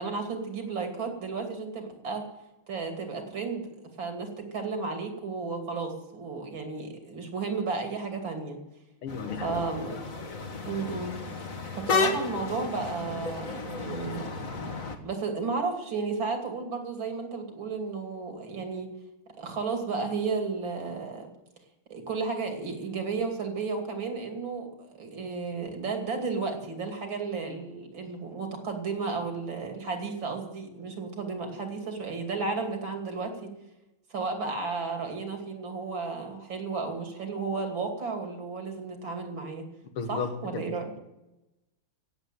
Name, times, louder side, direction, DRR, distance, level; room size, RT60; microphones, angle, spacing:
voice 1, 0.0-2.2 2.7-8.6 9.4-10.0 10.6-11.1 11.8-14.2 15.0-18.9 19.4-21.3 21.9-33.5 34.1-39.7 40.1-40.9, right 4 dB, 60° right, 3.4 m, -33 dB
voice 2, 9.0-9.6 40.0-40.7, left 5 dB, 80° left, 2.4 m, -34 dB
sound 1, 9.1-15.0, left 4 dB, 40° left, 1.8 m, -33 dB
16.5 x 8.0 x 9.2 m
omnidirectional pair, 2.3 m